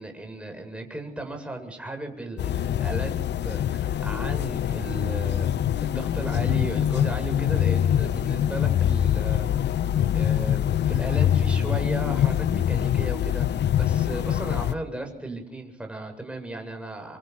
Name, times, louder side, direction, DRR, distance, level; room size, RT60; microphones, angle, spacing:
voice 1, 0.0-3.1 3.4-5.5 5.8-9.5 10.1-17.2, right 2 dB, 5° right, 4 dB, 7.7 m, -35 dB
sound 1, 2.4-14.7, left 10 dB, 65° left, 1.0 m, -24 dB
26.0 x 24.5 x 6.3 m, 0.78 s
supercardioid pair, 55°, 19 cm